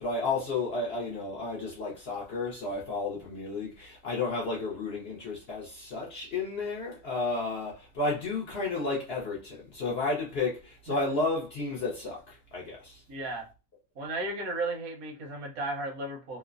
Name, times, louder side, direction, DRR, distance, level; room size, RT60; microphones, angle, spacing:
voice 1, 0.0-13.0, left 3 dB, 55° left, 0.7 m, -32 dB
voice 2, 13.1-13.5 14.0-16.4, right 2 dB, 85° right, 1.2 m, -34 dB
3.0 x 2.0 x 2.4 m
omnidirectional pair, 1.5 m